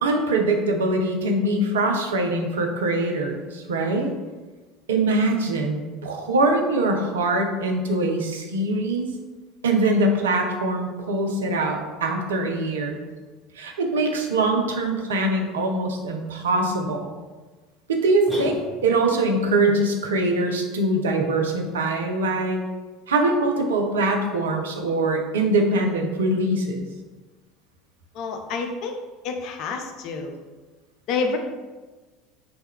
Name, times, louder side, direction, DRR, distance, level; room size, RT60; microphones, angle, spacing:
voice 1, 0.0-4.1 4.9-9.1 9.6-13.0 13.6-17.1 17.9-22.6 23.1-26.8, right 2 dB, 70° right, 2 dB, 0.3 m, -23 dB
sound 1, 18.3-19.2, right 2 dB, 10° right, 1.0 m, -34 dB
voice 2, 28.1-29.0 29.2-30.4 31.1-31.4, left 4 dB, 50° left, 4 dB, 0.3 m, -28 dB
2.1 x 2.1 x 3.5 m, 1.3 s
figure-of-eight pair, 70°, 0 cm